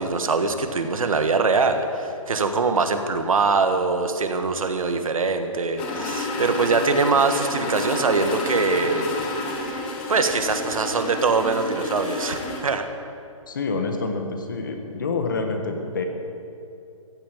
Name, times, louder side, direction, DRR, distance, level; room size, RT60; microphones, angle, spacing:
voice 1, 0.0-9.1 9.7-9.8 10.1-12.9, right 4 dB, 75° right, 7 dB, 1.7 m, -23 dB
sound 1, 5.8-12.6, left 2 dB, 5° left, 0.6 m, -30 dB
voice 2, 13.5-16.1, left 3 dB, 35° left, 5 dB, 1.5 m, -27 dB
15.0 x 9.5 x 9.2 m, 2.7 s
hypercardioid pair, 180°, 18 cm